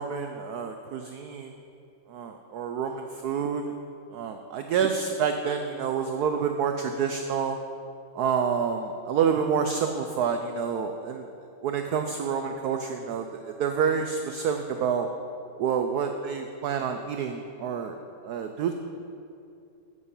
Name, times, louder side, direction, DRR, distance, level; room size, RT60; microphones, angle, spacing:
voice 1, 0.0-1.5 2.1-3.7 4.1-7.6 8.2-11.3 11.6-13.3 13.6-15.1 15.6-18.0 18.2-18.7, right 6 dB, 75° right, 6 dB, 0.9 m, -28 dB
11.0 x 8.2 x 5.4 m, 2.5 s
omnidirectional pair, 2.2 m